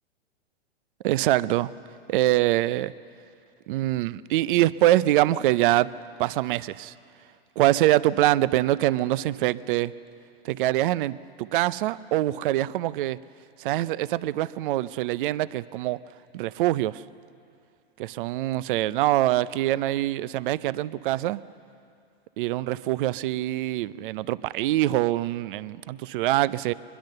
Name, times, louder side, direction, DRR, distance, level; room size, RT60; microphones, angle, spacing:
voice 1, 1.0-1.7 2.1-2.9 3.7-5.9 6.2-6.9 7.6-9.9 10.4-13.2 13.6-16.0 16.3-17.0 18.0-21.4 22.4-26.7, right 15 dB, 55° right, 18 dB, 0.7 m, -24 dB
23.5 x 21.5 x 6.7 m, 2.4 s
hypercardioid pair, 120°, 31 cm